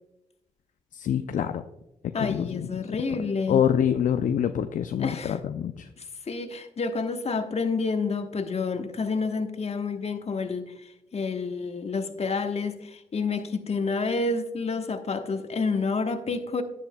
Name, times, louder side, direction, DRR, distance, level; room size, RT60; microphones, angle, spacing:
voice 1, 0.9-1.6 2.2-2.7 3.5-5.9, left 9 dB, 60° left, 9 dB, 0.5 m, -26 dB
voice 2, 2.1-3.6 5.0-5.4 6.0-16.6, left 4 dB, 45° left, 7 dB, 1.2 m, -29 dB
10.5 x 9.7 x 2.2 m, 0.93 s
hypercardioid pair, 45°, 15 cm